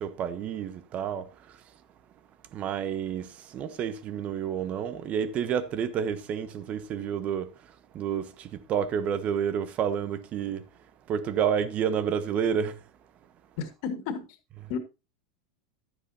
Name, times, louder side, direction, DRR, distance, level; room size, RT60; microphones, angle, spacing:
voice 1, 0.0-1.3 2.5-7.5 7.9-10.6 11.1-12.7, right 8 dB, 40° right, 1.1 m, -29 dB
voice 2, 13.6-14.4 14.7-14.8, left 6 dB, 60° left, 2.1 m, -32 dB
12.0 x 9.6 x 2.9 m
hypercardioid pair, 95°, 4 cm